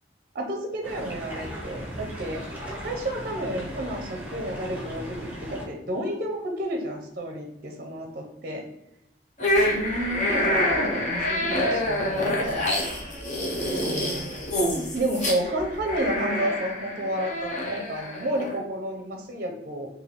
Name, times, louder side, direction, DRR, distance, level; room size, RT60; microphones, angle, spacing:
voice 1, 0.3-2.4 2.8-8.6 9.6-12.6 13.7-14.3 14.9-19.9, right 1 dB, 50° right, 3 dB, 0.5 m, -31 dB
sound 1, 0.8-5.6, right 1 dB, 10° right, 0.8 m, -37 dB
sound 2, 9.4-18.6, left 1 dB, 40° left, 0.8 m, -27 dB
3.2 x 2.7 x 3.9 m, 0.87 s
head